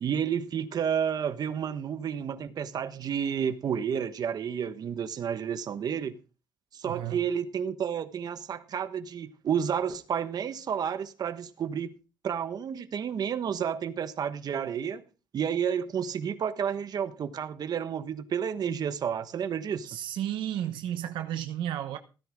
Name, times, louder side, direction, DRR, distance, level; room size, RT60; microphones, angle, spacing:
voice 1, 0.0-6.1 6.7-11.9 12.2-15.0 15.3-19.9, right 8 dB, 55° right, 1.3 m, -31 dB
voice 2, 6.8-7.2 19.9-22.0, right 11 dB, 85° right, 1.0 m, -33 dB
16.0 x 10.0 x 3.6 m
cardioid pair, 95°, 8 cm